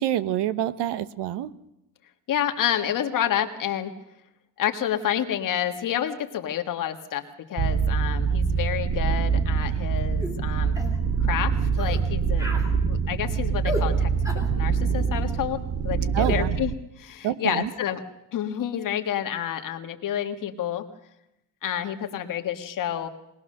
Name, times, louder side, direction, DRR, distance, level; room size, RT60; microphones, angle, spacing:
voice 1, 0.0-1.5 16.1-16.6 17.2-17.7, right 12 dB, 85° right, 15 dB, 1.1 m, -27 dB
voice 2, 2.3-3.9 4.6-7.2 7.5-10.8 11.2-12.5 12.8-14.1 14.5-18.0 18.3-20.9 21.6-23.1, left 10 dB, 50° left, 7 dB, 1.7 m, -29 dB
sound 1, 7.6-16.8, right 6 dB, 40° right, 0.8 m, -25 dB
sound 2, 10.2-10.4 10.8-11.0 11.8-12.0 12.4-12.7 13.6-13.9 14.2-14.5 16.2-16.4, left 1 dB, 10° right, 2.9 m, -32 dB
22.0 x 19.0 x 6.6 m, 0.87 s
cardioid pair, 170°, 40 cm